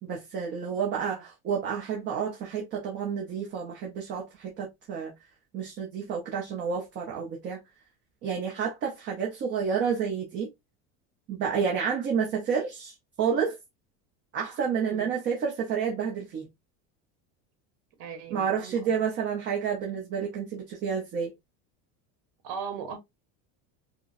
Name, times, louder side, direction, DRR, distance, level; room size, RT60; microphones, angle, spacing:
voice 1, 0.0-5.1 5.5-7.6 8.2-10.5 11.3-13.6 14.3-16.5 18.3-21.3, right 6 dB, 30° right, 0.7 m, -30 dB
voice 2, 0.9-1.2 14.8-15.2 18.0-19.0 22.4-23.0, right 6 dB, 70° right, 1.4 m, -39 dB
4.9 x 2.1 x 2.5 m
cardioid pair, 180°, 37 cm